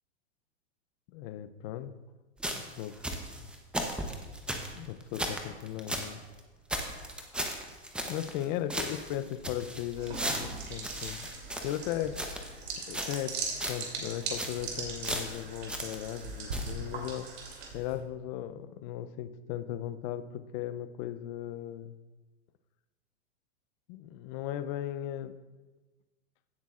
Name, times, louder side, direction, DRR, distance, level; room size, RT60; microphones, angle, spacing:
voice 1, 1.1-1.9 2.5-3.0 3.4-3.5 4.7-6.2 7.0-7.2 8.1-11.3 11.6-12.2 12.9-13.4 13.6-17.3 17.7-22.0 23.9-25.3, left 12 dB, 45° left, 11 dB, 0.6 m, -37 dB
sound 1, 2.4-6.1 6.4-6.5 6.7-8.4 8.7-12.5 12.9-13.3 13.6-13.9 14.2-14.7 15.0-16.2 16.5-16.7, right 1 dB, 5° right, 0.9 m, -36 dB
sound 2, 9.9-18.0, right 3 dB, 70° right, 3.0 m, -39 dB
16.0 x 8.0 x 2.5 m, 1.2 s
hypercardioid pair, 125°, 33 cm